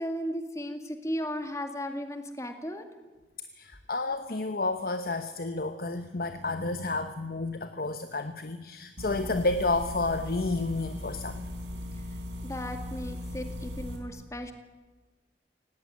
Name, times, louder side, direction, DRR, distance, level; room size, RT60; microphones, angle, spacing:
voice 1, 0.0-2.9 12.4-14.5, equal, 15° left, 6 dB, 2.1 m, -35 dB
voice 2, 3.5-11.5, left 2 dB, 55° left, 9 dB, 1.1 m, -31 dB
sound 1, 9.0-14.0, left 1 dB, 90° right, 4.1 m, -38 dB
18.5 x 17.5 x 9.8 m, 1.2 s
head